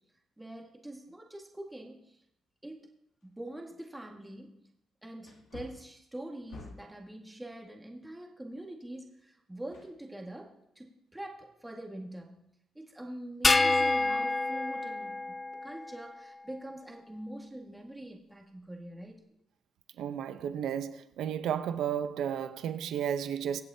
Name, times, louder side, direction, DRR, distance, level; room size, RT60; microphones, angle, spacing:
voice 1, 0.4-2.2 2.6-2.9 3.2-4.7 5.0-12.5 12.8-19.2, right 1 dB, 10° right, 1.8 m, -44 dB
Wood, 3.2-3.3 3.9-4.0 5.2-7.0 9.7-10.5 10.8-10.9, left 4 dB, 80° left, 2.7 m, -50 dB
sound 1, 13.4-16.0, left 3 dB, 25° left, 0.3 m, -27 dB
voice 2, 20.0-23.6, right 9 dB, 80° right, 0.8 m, -33 dB
24.0 x 8.0 x 2.8 m
cardioid pair, 90°, 0 cm